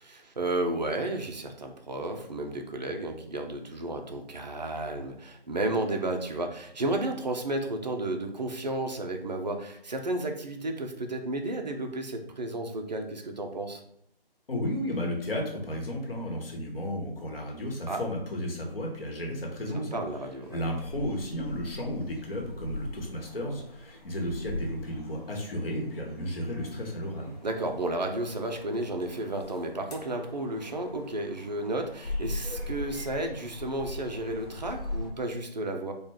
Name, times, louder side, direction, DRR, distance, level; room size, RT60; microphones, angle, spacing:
voice 1, 0.0-13.8 17.9-18.0 19.7-20.6 27.4-35.9, right 2 dB, 45° right, 4 dB, 0.5 m, -32 dB
voice 2, 14.5-20.0 20.5-27.3, equal, 65° left, 0 dB, 1.1 m, -33 dB
sound 1, 20.4-35.1, left 2 dB, 40° left, 0.7 m, -41 dB
3.2 x 2.2 x 3.5 m, 0.72 s
figure-of-eight pair, 160°, 30 cm